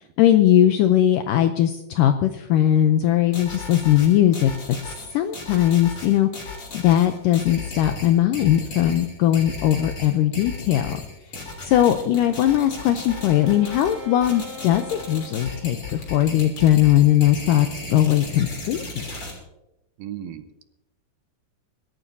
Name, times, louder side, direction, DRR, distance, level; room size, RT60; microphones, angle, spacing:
voice 1, 0.2-4.5 5.1-11.0 11.6-19.0, left 12 dB, 90° left, 8 dB, 1.9 m, -19 dB
sound 1, 3.3-19.3, left 3 dB, 35° left, 3.8 m, -36 dB
Wind instrument woodwind instrument, 11.9-16.2, left 2 dB, 40° right, 4.5 m, -41 dB
voice 2, 20.0-20.6, right 10 dB, 75° right, 9 dB, 2.6 m, -36 dB
24.0 x 13.5 x 2.7 m, 0.95 s
omnidirectional pair, 4.5 m